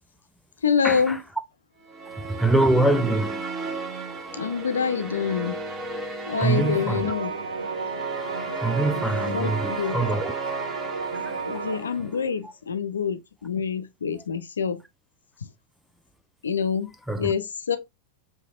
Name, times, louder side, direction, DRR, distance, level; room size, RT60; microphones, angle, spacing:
voice 1, 0.6-1.2 4.3-5.6 6.3-7.3 9.0-10.0 11.4-14.8 15.4-15.5 16.4-16.9 17.2-17.8, left 6 dB, 70° left, 0.5 m, -26 dB
sound 1, 1.8-12.2, right 3 dB, 20° right, 0.9 m, -34 dB
voice 2, 2.4-3.4 6.4-7.1 8.6-10.3 11.2-11.3 17.1-17.3, right 2 dB, ahead, 0.4 m, -23 dB
sound 2, 6.3-11.8, right 4 dB, 70° right, 0.4 m, -33 dB
5.7 x 2.7 x 2.4 m
figure-of-eight pair, 90°, 0 cm